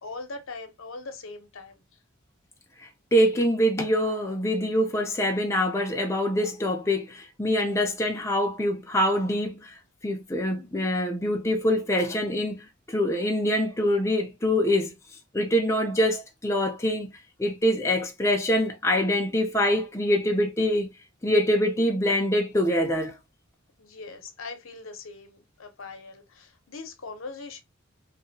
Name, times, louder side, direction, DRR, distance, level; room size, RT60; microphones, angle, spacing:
voice 1, 0.0-1.8 23.8-27.6, left 3 dB, 75° left, 0.8 m, -41 dB
voice 2, 2.8-9.8 10.0-14.9 15.3-17.1 17.4-20.9 21.2-23.2, equal, 15° left, 0.5 m, -25 dB
2.8 x 2.7 x 2.6 m
head